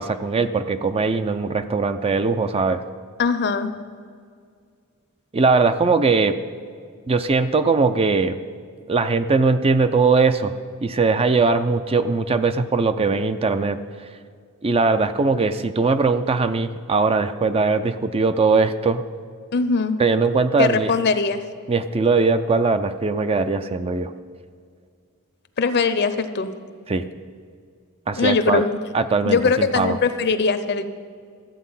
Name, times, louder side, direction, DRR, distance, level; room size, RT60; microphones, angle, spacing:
voice 1, 0.0-2.8 5.3-6.4 7.1-8.4 8.9-10.5 10.8-13.8 14.6-19.0 20.0-20.9 21.7-24.1 26.9-27.1 28.1-28.6 28.9-30.0, right 4 dB, 25° right, 10 dB, 0.4 m, -20 dB
voice 2, 3.2-3.7 19.5-20.0 20.6-21.4 25.6-26.5 28.2-28.8 29.2-30.9, left 4 dB, 50° left, 11 dB, 0.7 m, -21 dB
13.5 x 8.2 x 5.5 m, 2.1 s
head